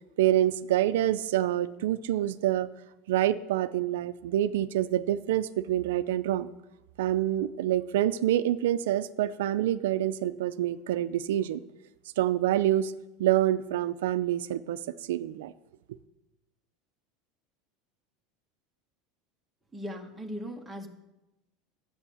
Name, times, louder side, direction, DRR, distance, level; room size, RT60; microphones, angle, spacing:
voice 1, 0.2-2.7 3.1-6.5 7.0-11.6 12.2-12.9 13.2-14.8 15.1-15.5, right 12 dB, 90° right, 13 dB, 0.4 m, -26 dB
voice 2, 19.7-20.9, equal, 5° right, 1 dB, 1.5 m, -38 dB
9.8 x 8.7 x 7.0 m, 0.97 s
supercardioid pair, 135°, 0 cm